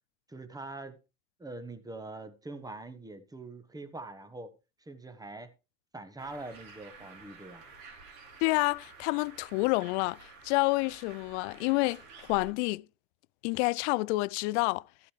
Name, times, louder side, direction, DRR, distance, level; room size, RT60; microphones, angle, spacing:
voice 1, 0.3-1.0 1.4-5.5 5.9-7.6, right 2 dB, 10° right, 1.3 m, -43 dB
Bird, 6.2-12.5, right 4 dB, 85° right, 3.9 m, -52 dB
voice 2, 8.4-12.9 13.4-14.8, left 24 dB, 60° left, 0.5 m, -29 dB
13.0 x 8.5 x 3.2 m
hypercardioid pair, 90°, 40 cm